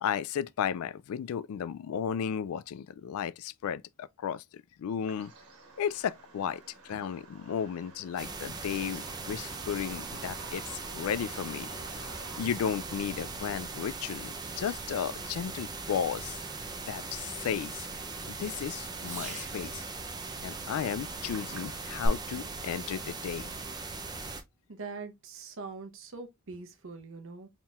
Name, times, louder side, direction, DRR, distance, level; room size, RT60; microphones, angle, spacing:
voice 1, 0.0-5.3 5.8-16.4 16.9-17.9 18.3-19.9 20.4-23.5, left 8 dB, 70° left, 0.3 m, -34 dB
Bird vocalization bird call bird song, 5.1-22.1, right 1 dB, 85° right, 1.4 m, -49 dB
sound 1, 8.2-24.4, right 3 dB, 20° right, 0.5 m, -40 dB
Fireworks, 12.7-19.8 21.4-21.9, right 4 dB, 35° right, 1.5 m, -52 dB
voice 2, 24.7-27.5, right 4 dB, 60° right, 0.9 m, -43 dB
4.3 x 3.7 x 2.4 m
head